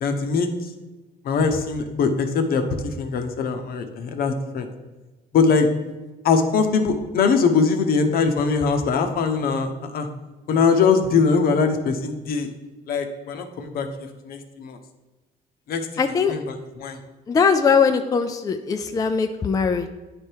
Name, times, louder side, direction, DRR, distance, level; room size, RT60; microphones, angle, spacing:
voice 1, 0.0-0.7 1.2-4.7 5.3-5.7 6.2-10.1 10.5-12.5 12.9-14.8 15.7-15.9 16.3-17.0, left 5 dB, 65° left, 6 dB, 0.9 m, -22 dB
voice 2, 16.0-16.3 17.3-19.9, left 5 dB, 20° left, 6 dB, 0.4 m, -20 dB
9.4 x 3.4 x 4.5 m, 1.2 s
cardioid pair, 110°, 17 cm